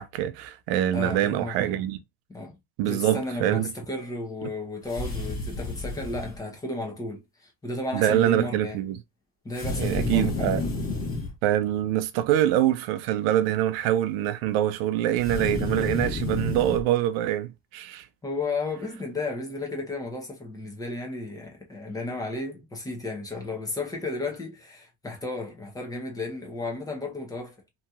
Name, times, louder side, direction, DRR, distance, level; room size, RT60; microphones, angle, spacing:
voice 1, 0.0-2.0 2.8-3.7 4.4-4.5 7.9-9.0 9.8-10.6 11.4-18.1, right 12 dB, 70° right, 0.5 m, -25 dB
voice 2, 0.9-1.8 2.3-2.6 2.8-8.8 9.4-10.5 18.2-27.6, left 2 dB, 10° left, 0.8 m, -33 dB
sound 1, 4.9-6.4 9.5-11.3 15.2-16.8, left 2 dB, 30° left, 1.2 m, -30 dB
2.9 x 2.7 x 2.3 m
supercardioid pair, 135°, 31 cm